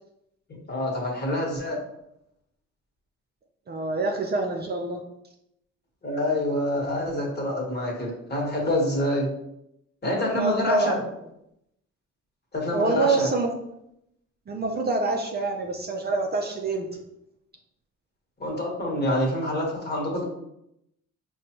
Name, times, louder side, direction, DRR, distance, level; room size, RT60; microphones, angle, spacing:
voice 1, 0.5-1.8 6.0-9.3 10.0-11.0 12.5-13.3 18.4-20.2, left 1 dB, 35° left, -2 dB, 1.3 m, -26 dB
voice 2, 3.7-5.0 10.3-11.0 12.7-13.6 14.5-16.9, right 3 dB, 35° right, 2 dB, 0.5 m, -26 dB
4.9 x 2.3 x 2.9 m, 0.80 s
cardioid pair, 90°, 30 cm